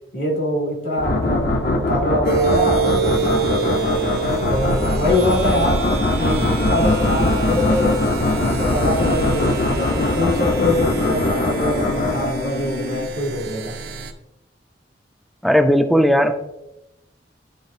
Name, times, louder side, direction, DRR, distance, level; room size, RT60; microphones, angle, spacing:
voice 1, 0.1-3.9 4.5-5.9 6.2-8.0 8.3-13.8, left 1 dB, 70° left, 0 dB, 2.4 m, -24 dB
sound 1, 1.0-12.7, left 2 dB, 50° left, 0.7 m, -21 dB
sound 2, 2.2-14.1, right 6 dB, 55° right, 0.6 m, -28 dB
sound 3, 5.5-13.1, left 2 dB, 90° left, 0.6 m, -30 dB
voice 2, 15.4-16.3, equal, ahead, 8 dB, 0.4 m, -15 dB
10.0 x 4.7 x 2.7 m, 0.92 s
head